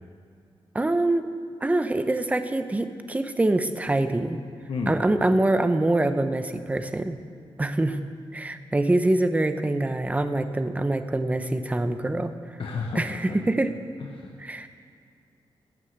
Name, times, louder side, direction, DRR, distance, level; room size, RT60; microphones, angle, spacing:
voice 1, 0.7-1.3 1.6-4.4 4.9-7.2 7.6-8.0 8.3-12.3 12.9-13.7 14.4-14.7, right 2 dB, 15° right, 9 dB, 0.8 m, -24 dB
voice 2, 12.6-13.4 14.0-14.3, left 4 dB, 65° left, 1 dB, 1.1 m, -32 dB
15.5 x 9.6 x 8.1 m, 2.3 s
wide cardioid pair, 125°, 10 cm